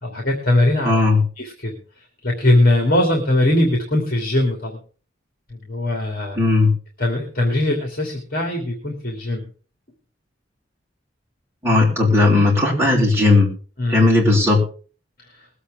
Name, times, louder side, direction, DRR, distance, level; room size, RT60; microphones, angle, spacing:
voice 1, 0.0-1.0 1.4-1.8 2.2-4.8 5.5-6.4 7.0-9.5 13.8-14.0, left 1 dB, 55° left, 2 dB, 2.8 m, -20 dB
voice 2, 0.8-1.2 6.3-6.7 11.6-13.5 13.9-14.6, left 2 dB, 15° right, -4 dB, 5.0 m, -16 dB
21.0 x 8.3 x 3.7 m, 0.38 s
head